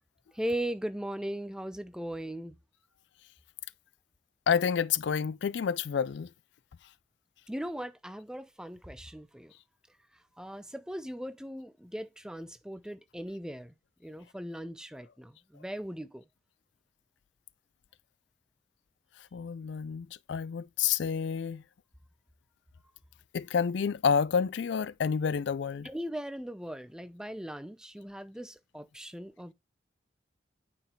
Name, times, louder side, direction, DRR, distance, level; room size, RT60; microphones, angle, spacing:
voice 1, 0.3-2.6 7.5-9.5 10.1-13.7 14.0-16.2 25.8-29.5, equal, 5° right, 0.5 m, -38 dB
voice 2, 4.5-6.3 19.3-21.6 23.3-25.9, left 7 dB, 70° left, 0.4 m, -29 dB
9.1 x 5.1 x 3.1 m
head